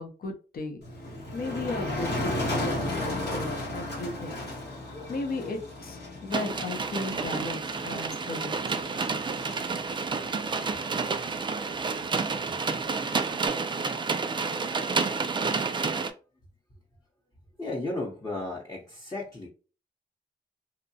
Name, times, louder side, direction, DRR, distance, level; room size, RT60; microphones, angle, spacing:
voice 1, 0.0-4.5 5.1-8.6, left 2 dB, 60° left, 4 dB, 0.7 m, -36 dB
Motor vehicle (road), 0.8-13.5, left 1 dB, 80° left, 1.0 m, -36 dB
sound 1, 6.3-16.1, right 4 dB, 30° right, 0.3 m, -30 dB
voice 2, 17.6-19.5, left 2 dB, 20° left, -3 dB, 0.7 m, -34 dB
2.7 x 2.1 x 2.6 m, 0.35 s
cardioid pair, 65°, 17 cm